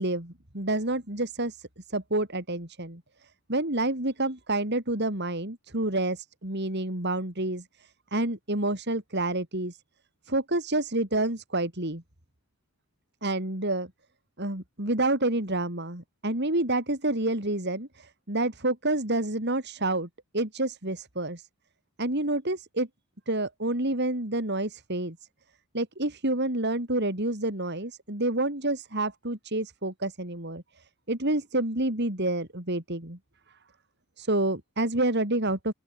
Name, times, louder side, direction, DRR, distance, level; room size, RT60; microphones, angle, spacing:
voice 1, 0.0-9.8 10.2-12.0 13.2-13.9 14.4-20.1 20.3-21.5 22.0-22.9 23.3-25.2 25.7-33.2 34.2-35.7, right 2 dB, 50° right, 4.3 m, -29 dB
open air
head